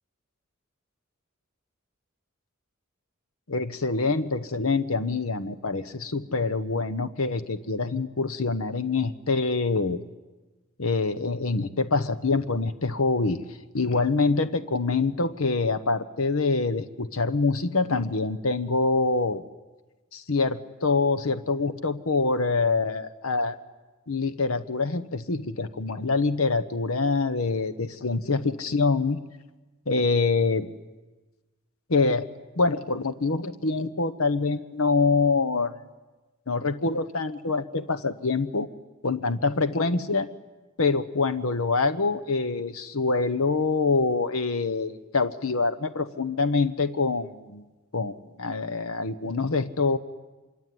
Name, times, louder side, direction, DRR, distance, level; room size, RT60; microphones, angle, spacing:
voice 1, 3.5-10.0 10.8-13.4 13.7-19.4 20.1-23.6 24.1-29.2 29.9-30.7 31.9-32.3 32.6-35.7 36.5-38.7 39.0-40.3 40.8-47.6 47.9-50.0, left 3 dB, 85° left, 11 dB, 1.1 m, -25 dB
26.0 x 23.5 x 9.4 m, 1.2 s
head